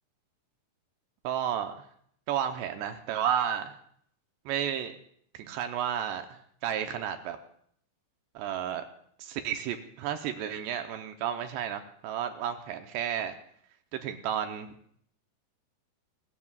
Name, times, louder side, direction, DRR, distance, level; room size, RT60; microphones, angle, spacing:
voice 1, 1.2-1.9 2.3-3.8 4.5-4.9 5.3-7.4 8.3-8.8 9.2-13.4 13.9-14.7, right 9 dB, 80° right, 6 dB, 2.7 m, -32 dB
28.5 x 15.0 x 2.4 m, 0.65 s
omnidirectional pair, 5.6 m